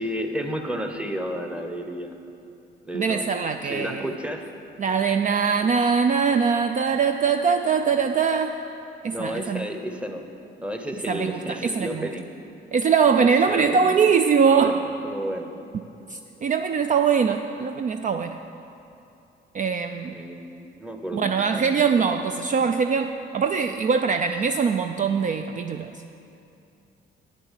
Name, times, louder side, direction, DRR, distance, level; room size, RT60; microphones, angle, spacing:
voice 1, 0.0-2.2 2.8-3.3 3.6-4.5 9.1-10.2 10.6-12.3 13.5-14.0 14.6-14.7 15.0-15.5 20.1-21.8 22.1-22.3, equal, 5° right, 5 dB, 1.0 m, -32 dB
voice 2, 2.9-4.1 4.8-8.6 9.0-9.7 11.1-12.1 12.7-14.9 16.1-18.4 19.5-20.1 21.1-25.9, right 6 dB, 40° right, 7 dB, 0.4 m, -22 dB
9.4 x 6.8 x 7.4 m, 2.7 s
cardioid pair, 90°, 20 cm